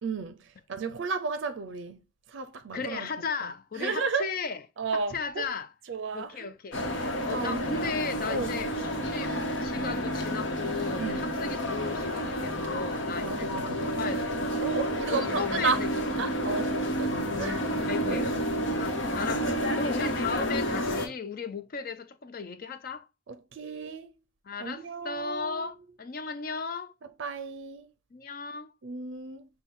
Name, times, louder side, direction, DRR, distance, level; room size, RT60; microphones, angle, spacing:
voice 1, 0.0-2.0 2.3-3.1 3.4-4.3 4.8-5.5 5.9-6.5 6.8-7.8 8.3-8.6 11.0-11.3 13.1-13.8 14.1-14.2 14.5-15.8 16.2-18.5 19.2-19.4 19.6-19.7 23.3-24.1 24.6-25.7 27.0-27.9 28.8-29.5, right 4 dB, 70° right, 0.5 m, -34 dB
voice 2, 2.7-4.6 4.9-5.7 6.1-6.8 7.2-14.7 15.1-15.9 17.5-18.4 18.8-23.1 24.5-26.9 28.1-28.7, left 4 dB, 45° left, 0.4 m, -36 dB
sound 1, 6.7-21.1, equal, 70° left, 1.0 m, -30 dB
5.8 x 2.2 x 3.5 m
head